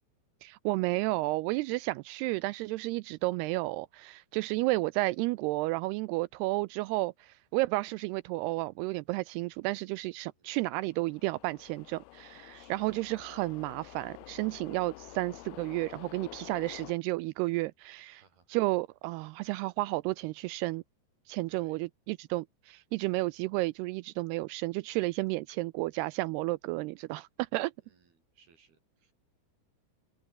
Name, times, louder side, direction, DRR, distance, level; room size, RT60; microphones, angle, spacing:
voice 1, 0.4-18.2 18.5-20.8 21.3-27.7, right 21 dB, 85° right, 2.3 m, -32 dB
voice 2, 10.2-10.6 12.5-12.9 18.1-18.5 21.5-21.8 27.8-29.1, right 6 dB, 60° right, 6.9 m, -64 dB
sound 1, 10.8-16.9, left 20 dB, 85° left, 2.3 m, -49 dB
omnidirectional pair, 5.0 m